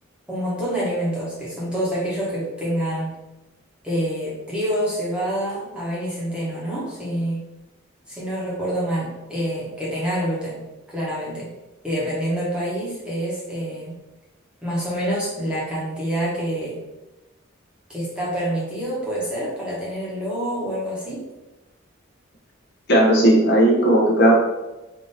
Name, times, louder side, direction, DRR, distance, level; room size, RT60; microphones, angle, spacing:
voice 1, 0.3-3.1 3.8-7.4 8.1-10.6 10.9-11.5 11.8-13.9 14.6-16.8 17.9-21.2, equal, 5° right, -7 dB, 1.1 m, -27 dB
voice 2, 22.9-24.4, right 1 dB, 50° left, -3 dB, 1.0 m, -15 dB
3.6 x 2.9 x 4.1 m, 1.0 s
head